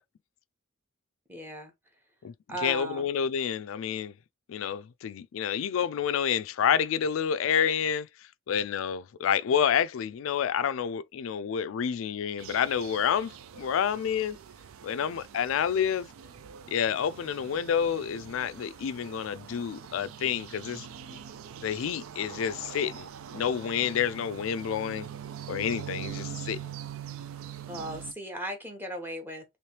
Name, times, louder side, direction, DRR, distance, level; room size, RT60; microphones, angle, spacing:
voice 1, 1.3-1.7 2.5-3.1 27.7-29.4, right 1 dB, 10° right, 1.0 m, -37 dB
voice 2, 2.6-4.1 4.5-8.1 8.5-14.4 14.8-16.1 16.7-20.9 21.6-25.1 25.5-26.7, left 8 dB, 70° left, 0.3 m, -29 dB
sound 1, 12.4-28.1, right 9 dB, 80° right, 0.4 m, -43 dB
3.2 x 3.1 x 2.9 m
head